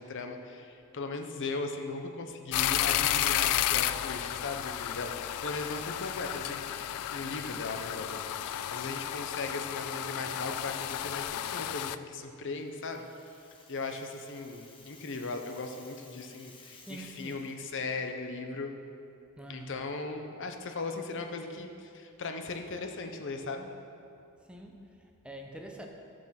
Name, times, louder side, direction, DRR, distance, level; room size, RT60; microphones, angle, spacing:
voice 1, 0.0-6.6 7.1-13.1 13.7-18.7 19.5-23.7, left 3 dB, 55° left, 5 dB, 0.8 m, -38 dB
sound 1, 2.5-12.0, left 12 dB, 90° left, 0.3 m, -32 dB
Rattle (instrument), 12.4-17.6, left 3 dB, 25° left, 1.1 m, -56 dB
voice 2, 16.9-17.4 19.4-19.8 24.5-25.9, right 1 dB, 5° right, 2 dB, 0.7 m, -45 dB
12.0 x 7.5 x 5.8 m, 2.7 s
head